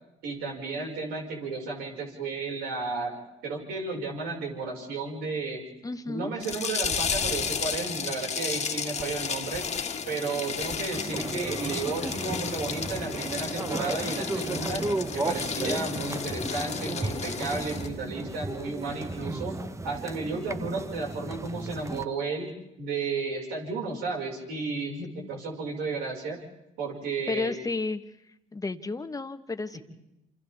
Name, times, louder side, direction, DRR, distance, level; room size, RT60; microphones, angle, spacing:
voice 1, 0.2-5.6 6.1-9.6 10.1-14.8 15.1-19.5 19.8-22.5 22.8-26.4 26.8-27.6 29.7-29.8, right 4 dB, 75° right, -1 dB, 5.8 m, -33 dB
voice 2, 5.8-6.3 27.3-28.0 28.5-29.8, left 3 dB, 20° left, 9 dB, 1.4 m, -32 dB
sound 1, 6.4-17.9, left 6 dB, 45° left, 2.0 m, -33 dB
sound 2, 10.9-22.0, right 2 dB, 20° right, 1.0 m, -34 dB
29.0 x 28.0 x 3.7 m, 0.87 s
supercardioid pair, 65°, 16 cm